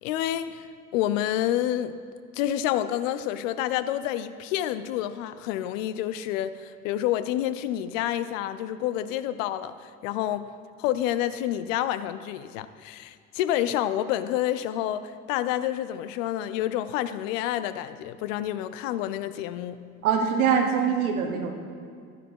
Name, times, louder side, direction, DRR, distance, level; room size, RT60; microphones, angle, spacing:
voice 1, 0.0-0.7 0.9-1.9 2.3-10.5 10.8-19.8, left 12 dB, 60° left, 14 dB, 0.6 m, -28 dB
voice 2, 20.0-21.5, right 7 dB, 75° right, 5 dB, 1.3 m, -23 dB
11.0 x 9.7 x 4.6 m, 2.1 s
figure-of-eight pair, 70°, 43 cm